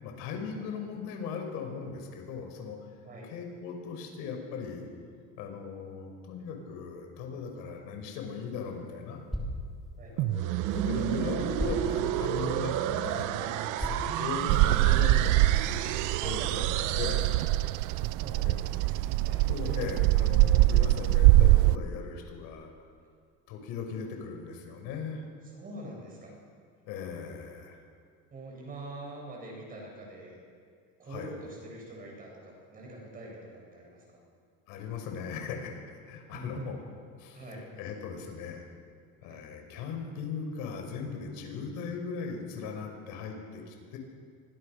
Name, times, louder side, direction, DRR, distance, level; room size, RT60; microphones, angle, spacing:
voice 1, 0.0-2.8 3.2-4.9 5.4-9.2 10.1-15.6 16.2-17.3 18.4-18.5 19.5-22.7 23.5-25.2 26.9-27.8 31.0-31.3 34.7-36.8 37.2-38.6 39.2-44.0, left 5 dB, 80° left, 3 dB, 5.8 m, -38 dB
sound 1, 8.0-15.0, equal, ahead, 3.6 m, -41 dB
sound 2, 10.2-18.1, right 12 dB, 70° right, 1.2 m, -31 dB
Bird vocalization bird call bird song, 14.5-21.8, right 17 dB, 85° right, 0.6 m, -23 dB
voice 2, 18.2-18.7 19.2-19.4 25.5-26.3 28.3-30.4 31.0-34.2 36.3-36.7 37.3-37.7 39.2-39.4, right 2 dB, 25° right, -1 dB, 8.0 m, -44 dB
28.5 x 24.5 x 6.7 m, 2.1 s
cardioid pair, 170°, 32 cm